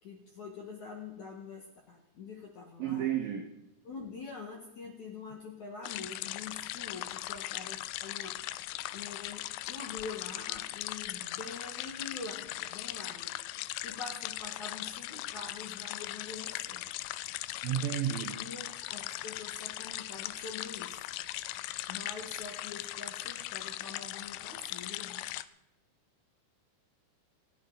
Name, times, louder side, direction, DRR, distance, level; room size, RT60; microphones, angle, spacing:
voice 1, 0.0-3.1 3.8-8.4 8.9-13.3 13.8-16.9 18.4-21.1 21.9-25.3, left 4 dB, 65° left, 1.9 m, -45 dB
voice 2, 2.8-3.5 17.6-18.4, right 10 dB, 85° right, 2.0 m, -32 dB
sound 1, 5.8-25.4, left 16 dB, 85° left, 2.6 m, -39 dB
27.5 x 9.5 x 4.0 m
omnidirectional pair, 5.8 m